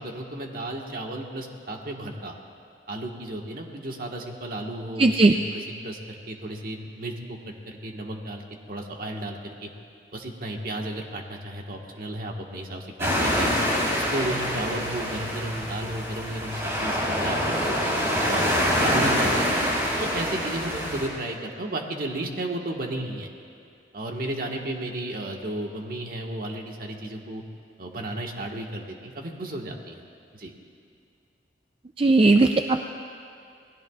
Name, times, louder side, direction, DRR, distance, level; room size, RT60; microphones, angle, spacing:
voice 1, 0.0-2.3 2.9-6.0 6.3-7.4 7.7-9.7 10.1-13.5 13.9-18.4 18.8-19.6 20.0-23.3 23.9-27.4 27.8-30.0 30.3-30.5, right 1 dB, 55° right, 1 dB, 1.5 m, -33 dB
voice 2, 5.0-5.3 32.0-32.8, right 3 dB, 35° right, 6 dB, 0.4 m, -17 dB
sound 1, 13.0-21.1, equal, 15° right, 3.7 m, -25 dB
28.0 x 19.5 x 2.4 m, 2.5 s
head